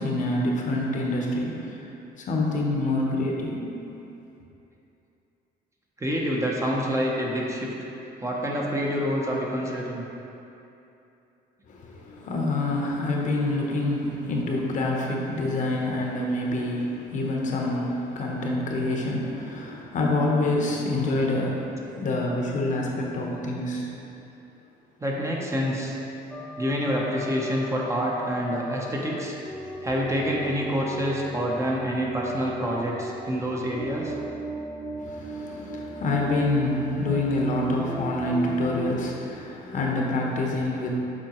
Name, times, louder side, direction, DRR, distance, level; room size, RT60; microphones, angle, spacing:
voice 1, 0.0-1.8 2.2-3.7 11.7-23.9 29.6-29.7 35.0-41.0, left 2 dB, 50° left, -1 dB, 0.9 m, -27 dB
voice 2, 6.0-7.7 8.2-10.0 25.0-25.9 26.6-29.4 29.8-34.1, equal, 15° right, -3 dB, 0.8 m, -27 dB
sound 1, 26.3-38.9, equal, 5° left, 0.4 m, -37 dB
7.5 x 4.5 x 3.0 m, 2.9 s
cardioid pair, 110°, 17 cm